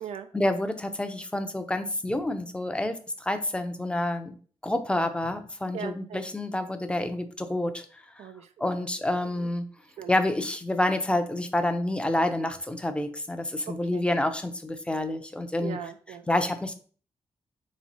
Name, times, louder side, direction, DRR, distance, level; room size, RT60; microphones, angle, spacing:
voice 1, 0.3-4.3 4.6-8.3 8.6-9.7 10.1-15.8 16.3-16.7, left 1 dB, 10° left, 8 dB, 0.6 m, -28 dB
voice 2, 5.7-6.2 8.2-8.9 9.2-9.5 10.0-10.1 13.7-14.0 15.6-16.3, right 8 dB, 85° right, 8 dB, 0.4 m, -40 dB
3.2 x 3.1 x 4.0 m, 0.42 s
cardioid pair, 65°, 11 cm